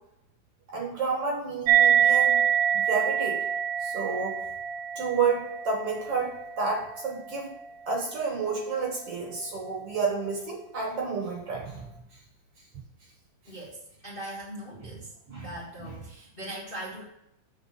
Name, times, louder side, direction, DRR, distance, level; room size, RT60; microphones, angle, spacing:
voice 1, 0.7-2.4 2.7-3.5 3.8-4.4 5.0-7.5 7.9-11.9 15.3-15.5, right 4 dB, 55° right, 0 dB, 2.2 m, -30 dB
sound 1, 1.7-8.6, right 9 dB, 85° right, 1.5 m, -26 dB
voice 2, 13.4-17.0, right 1 dB, 25° left, -4 dB, 1.2 m, -40 dB
8.3 x 4.7 x 6.7 m, 0.81 s
omnidirectional pair, 3.6 m